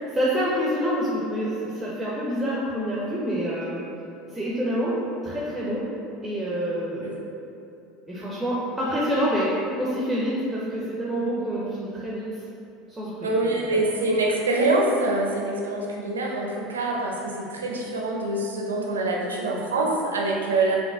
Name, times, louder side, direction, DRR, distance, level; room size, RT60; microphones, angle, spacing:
voice 1, 0.1-3.8 4.3-5.0 5.2-5.8 6.2-7.1 8.1-12.4 12.9-13.8, equal, 10° right, -7 dB, 0.6 m, -27 dB
voice 2, 13.2-20.8, right 2 dB, 75° right, -2 dB, 0.5 m, -25 dB
5.3 x 2.5 x 2.3 m, 2.8 s
figure-of-eight pair, 70°, 0 cm